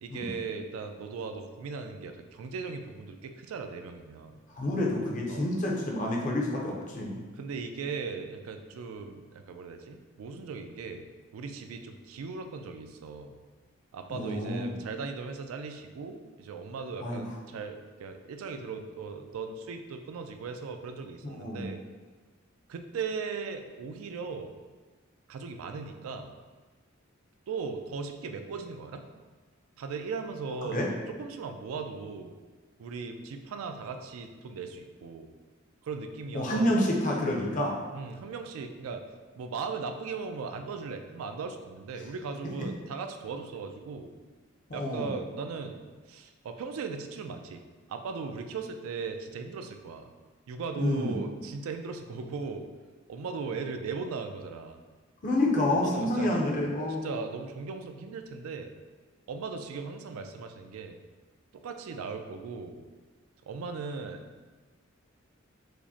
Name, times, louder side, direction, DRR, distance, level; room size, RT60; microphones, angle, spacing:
voice 1, 0.0-4.4 5.3-5.5 7.4-11.0 11.3-13.4 13.9-21.8 22.7-24.5 25.3-26.3 27.5-29.0 29.8-32.3 32.8-35.3 35.8-36.7 37.9-39.0 39.4-44.1 44.7-45.8 46.1-47.6 47.9-50.1 50.5-52.7 53.1-54.8 55.7-56.7 57.0-58.7 59.3-61.0 61.6-62.8 63.5-64.2, right 5 dB, 90° right, 6 dB, 0.3 m, -38 dB
voice 2, 4.5-7.2 14.1-14.8 17.0-17.2 21.2-21.7 30.7-30.9 36.3-37.8 44.7-45.1 50.8-51.2 55.2-57.0, left 1 dB, 40° left, -1 dB, 0.6 m, -28 dB
4.8 x 2.1 x 2.7 m, 1.3 s
head